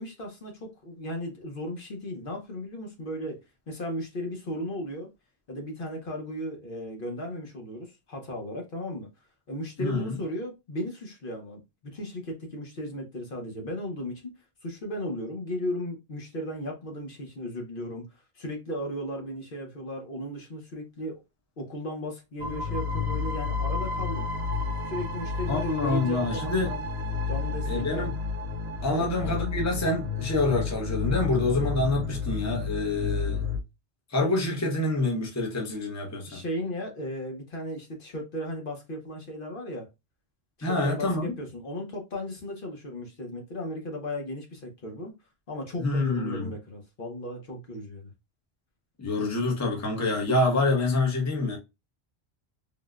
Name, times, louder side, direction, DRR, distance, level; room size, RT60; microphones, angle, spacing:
voice 1, 0.0-3.4 3.7-5.1 5.5-9.1 9.5-14.3 14.6-18.0 18.3-21.2 21.6-24.3 24.9-26.8 27.3-28.1 28.9-29.1 36.3-39.9 40.6-45.1 45.5-48.1, equal, 60° left, 1.0 m, -36 dB
voice 2, 9.8-10.2 25.5-26.7 27.6-28.1 28.8-33.4 34.1-36.4 40.6-41.3 45.8-46.5 49.0-51.6, left 2 dB, 20° left, 0.7 m, -27 dB
sound 1, 22.4-33.6, left 5 dB, 85° right, 0.9 m, -31 dB
3.6 x 2.1 x 2.3 m
omnidirectional pair, 1.1 m